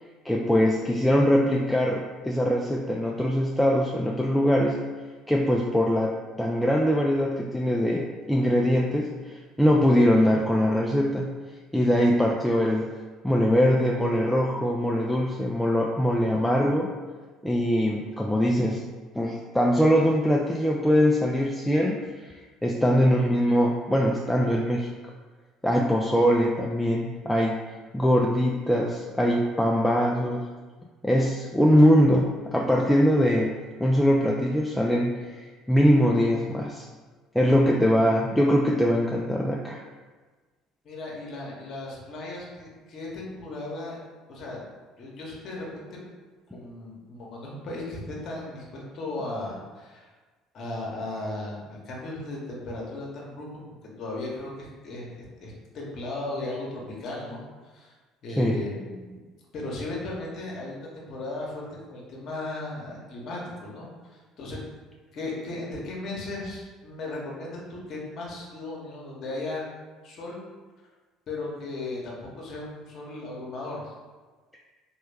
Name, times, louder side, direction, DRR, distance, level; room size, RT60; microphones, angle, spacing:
voice 1, 0.2-4.8 5.3-11.3 11.7-13.0 13.2-16.9 17.4-18.8 19.2-22.3 22.6-25.0 25.6-27.6 27.9-30.6 31.0-36.9 37.3-39.8 58.4-58.5, equal, 5° left, -2 dB, 0.3 m, -22 dB
voice 2, 40.8-44.0 44.3-44.6 45.0-46.0 46.5-50.1 50.5-53.6 54.0-55.1 55.4-57.4 57.7-57.9 58.2-59.2 59.5-64.6 65.1-69.7 70.0-70.4 71.3-73.9, left 2 dB, 55° left, -3 dB, 0.9 m, -36 dB
3.1 x 2.3 x 3.3 m, 1.4 s
hypercardioid pair, 65°, 0 cm